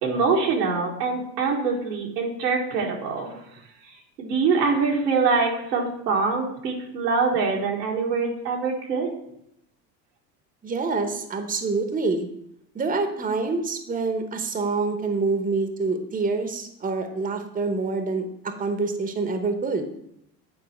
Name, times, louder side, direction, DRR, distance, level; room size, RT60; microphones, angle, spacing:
voice 1, 0.0-3.4 4.2-9.1, right 4 dB, 90° right, -1 dB, 1.6 m, -24 dB
voice 2, 10.6-12.3 12.7-19.9, right 3 dB, 15° right, 7 dB, 0.9 m, -26 dB
8.9 x 4.2 x 4.3 m, 0.76 s
hypercardioid pair, 80°, 48 cm